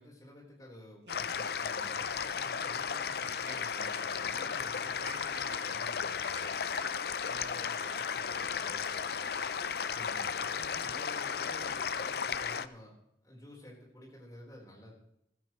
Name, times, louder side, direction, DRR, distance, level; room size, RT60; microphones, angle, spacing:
voice 1, 0.0-6.8 9.9-12.9 13.2-14.9, left 1 dB, 20° left, -2 dB, 4.1 m, -52 dB
sound 1, 1.1-12.7, left 6 dB, 60° left, 0.5 m, -34 dB
sound 2, 1.1-2.9 3.2-4.6 4.9-6.9, right 5 dB, 85° right, 1.3 m, -52 dB
voice 2, 7.2-9.4, right 1 dB, 35° right, 2 dB, 1.8 m, -52 dB
15.0 x 14.0 x 3.1 m, 0.76 s
head